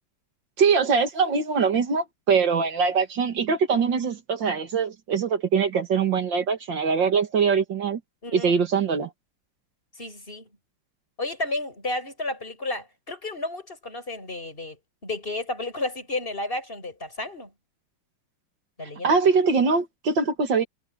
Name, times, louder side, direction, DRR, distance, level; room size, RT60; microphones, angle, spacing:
voice 1, 0.6-8.0 8.3-9.1 19.0-20.6, right 5 dB, 60° right, 2.4 m, -22 dB
voice 2, 8.2-8.5 10.0-10.5 11.2-14.8 15.0-17.5 18.8-19.2, left 2 dB, 25° left, 7.5 m, -32 dB
omnidirectional pair, 2.3 m